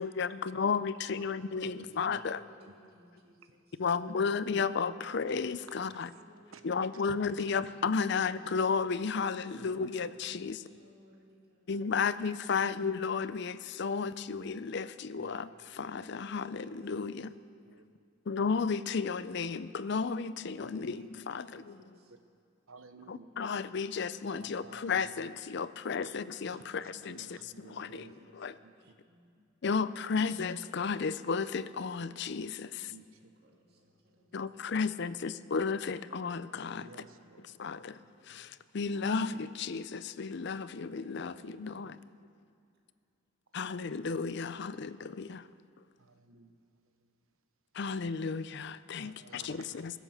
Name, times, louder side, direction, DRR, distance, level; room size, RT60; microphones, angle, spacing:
voice 1, 0.0-2.4 3.8-6.1 6.6-10.6 11.7-17.3 18.3-21.8 23.1-27.4 27.6-28.1 28.3-28.5 29.6-32.9 34.3-36.9 37.6-42.0 43.5-45.5 47.7-49.9, left 5 dB, 55° left, 0.5 m, -33 dB
voice 2, 1.1-3.8 4.9-7.3 9.3-11.8 16.0-17.3 19.8-22.1 24.7-24.8 27.7-29.4 31.7-33.2 33.4-34.8 40.9-42.0, equal, 50° right, 2.3 m, -60 dB
voice 3, 1.6-2.2 2.6-2.8 3.5-3.6 5.7-6.2 6.5-6.6 6.9-7.7 9.5-9.8 10.4-10.5 15.2-15.4 17.6-17.8 20.7-21.1 21.5-21.6 22.7-23.4 24.4-25.1 26.5-28.7 32.9-33.3 33.7-34.3 36.8-38.6 40.3-40.4 41.6-41.8 43.5-43.7 46.0-47.1 49.0-49.9, right 3 dB, 80° right, 1.0 m, -55 dB
22.0 x 8.3 x 6.4 m
head